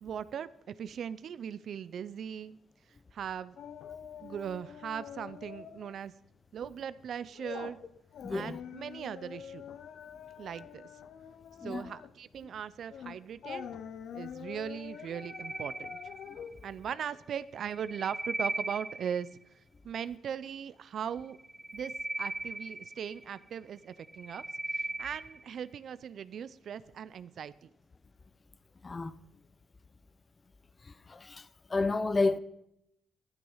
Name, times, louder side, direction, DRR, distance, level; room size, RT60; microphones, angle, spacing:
voice 1, 0.0-2.6 3.1-3.6 4.2-6.1 6.5-7.8 8.3-9.6 10.4-10.9 11.6-13.7 14.1-16.0 16.6-19.3 19.8-21.4 21.7-24.4 24.7-27.7, right 8 dB, 60° right, 0.6 m, -39 dB
sound 1, 3.6-6.0 6.3-6.5 6.9-17.9 18.2-18.3, left 8 dB, 65° left, 0.7 m, -46 dB
voice 2, 8.2-8.6 11.6-11.8 28.8-29.1 31.1-32.4, left 3 dB, 30° left, 0.7 m, -30 dB
sound 2, 14.9-16.6 17.5-19.4 21.3-23.4 23.9-25.5, right 2 dB, 5° right, 0.9 m, -38 dB
12.0 x 12.0 x 5.6 m
cardioid pair, 90°, 0 cm